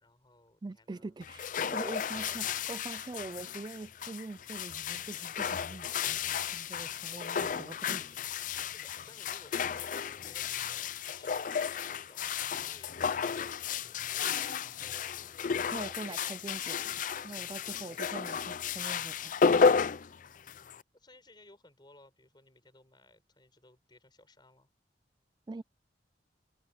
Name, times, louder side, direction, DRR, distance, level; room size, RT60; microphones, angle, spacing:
voice 1, 0.0-1.2 1.8-3.2 8.6-13.9 14.5-15.4 15.8-18.1 20.3-20.6 20.9-24.7, left 2 dB, 25° left, 7.1 m, -60 dB
voice 2, 0.6-8.2 15.7-16.8 17.2-19.4 25.5-25.6, right 3 dB, 25° right, 0.3 m, -43 dB
sound 1, 1.2-20.8, left 6 dB, 45° left, 0.4 m, -33 dB
head